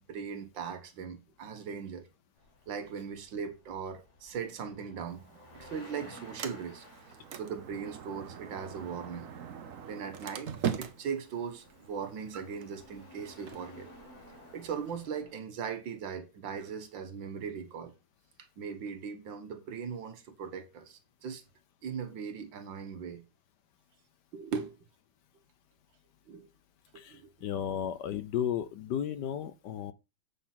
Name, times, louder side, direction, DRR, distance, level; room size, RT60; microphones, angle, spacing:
voice 1, 0.0-2.1 2.7-6.9 7.3-9.3 9.9-10.5 10.8-13.9 14.5-17.9 18.6-21.4 21.8-23.2 24.3-24.8 26.3-26.5 26.9-27.3, right 6 dB, 75° right, 1.9 m, -39 dB
sound 1, 2.4-15.3, equal, 35° left, 3.3 m, -55 dB
Sliding door, 5.1-15.1, right 8 dB, 55° right, 1.0 m, -42 dB
voice 2, 26.9-29.9, left 9 dB, 70° left, 1.2 m, -34 dB
8.4 x 4.4 x 5.8 m
omnidirectional pair, 2.1 m